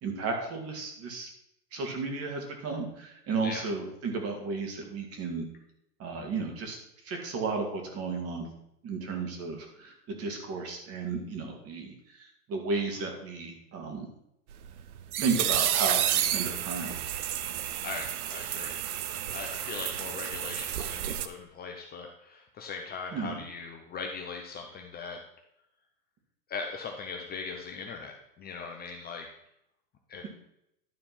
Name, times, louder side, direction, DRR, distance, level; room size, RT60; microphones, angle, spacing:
voice 1, 0.0-1.3 1.7-5.5 6.0-6.8 7.0-8.5 8.8-14.1 15.2-16.9 23.1-23.4, right 4 dB, 30° right, 3 dB, 2.5 m, -33 dB
sound 1, 14.5-21.3, right 11 dB, 65° right, 0.9 m, -31 dB
voice 2, 17.8-18.8 19.3-25.2 26.5-29.3 30.1-30.3, left 5 dB, 20° left, 3 dB, 0.9 m, -40 dB
11.5 x 4.3 x 5.7 m, 0.79 s
hypercardioid pair, 120°, 47 cm